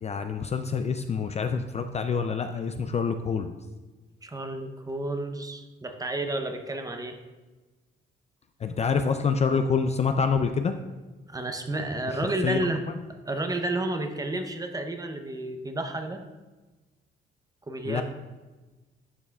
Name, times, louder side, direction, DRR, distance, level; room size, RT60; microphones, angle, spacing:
voice 1, 0.0-3.6 8.6-10.7 12.1-12.2 12.4-12.6 17.8-18.0, left 5 dB, 35° left, 8 dB, 0.4 m, -26 dB
voice 2, 4.2-7.2 11.3-12.8 13.2-16.2 17.7-18.0, right 2 dB, 20° right, 6 dB, 0.7 m, -31 dB
11.0 x 5.6 x 2.3 m, 1.2 s
cardioid pair, 90°, 20 cm